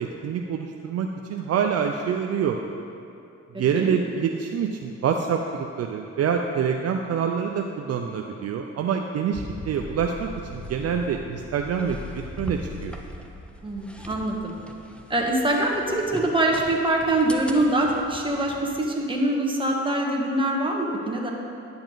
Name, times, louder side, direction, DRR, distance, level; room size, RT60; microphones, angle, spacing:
voice 1, 0.0-2.6 3.6-13.0, right 7 dB, 55° right, 3 dB, 0.6 m, -26 dB
voice 2, 3.5-3.9 13.6-14.5 15.1-21.3, right 1 dB, 15° right, -1 dB, 1.4 m, -24 dB
sound 1, 9.3-18.9, left 1 dB, 5° left, 0.7 m, -40 dB
10.0 x 6.9 x 4.0 m, 2.8 s
cardioid pair, 90°, 30 cm